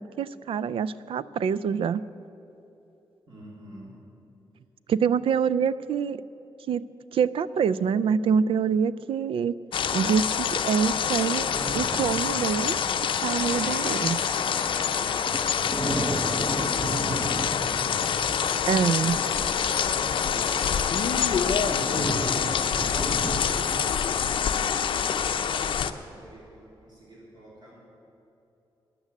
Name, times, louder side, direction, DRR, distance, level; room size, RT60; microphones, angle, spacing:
voice 1, 0.0-2.0 4.9-6.2 6.7-6.8 7.1-9.5 9.9-12.8 13.2-14.2 18.7-19.2, right 7 dB, 80° right, 17 dB, 0.4 m, -25 dB
voice 2, 3.3-3.9 15.6-18.3 18.7-22.1 22.6-27.8, right 1 dB, 50° right, -5 dB, 2.9 m, -45 dB
sound 1, 9.7-25.9, left 7 dB, 65° left, 0.6 m, -26 dB
sound 2, 11.5-24.1, right 2 dB, 25° right, 0.7 m, -35 dB
13.0 x 10.0 x 8.2 m, 3.0 s
wide cardioid pair, 170°, 9 cm